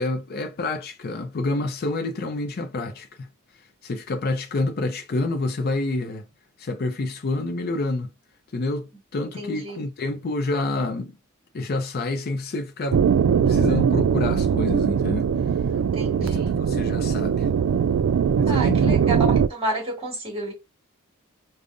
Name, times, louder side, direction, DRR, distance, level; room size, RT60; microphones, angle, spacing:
voice 1, 0.0-3.3 3.8-6.2 6.6-8.1 8.5-11.2 11.5-13.0 13.5-15.3 16.2-17.5 18.4-19.3, left 2 dB, 50° left, 0.5 m, -28 dB
voice 2, 9.2-9.9 15.7-16.6 18.5-20.5, right 2 dB, 30° right, 1.9 m, -31 dB
sound 1, 12.9-19.5, right 7 dB, 80° right, 0.3 m, -21 dB
5.1 x 2.1 x 2.5 m
head